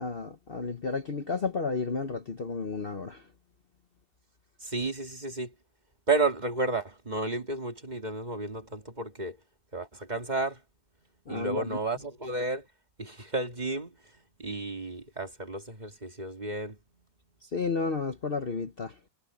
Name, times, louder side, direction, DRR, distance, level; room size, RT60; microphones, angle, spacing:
voice 1, 0.0-3.2 11.3-11.8 17.5-18.9, left 4 dB, 40° left, 1.1 m, -32 dB
voice 2, 4.6-5.5 6.1-9.4 9.7-10.6 11.3-12.7 13.0-13.9 14.4-16.8, right 3 dB, 25° right, 2.2 m, -32 dB
omnidirectional pair, 1.7 m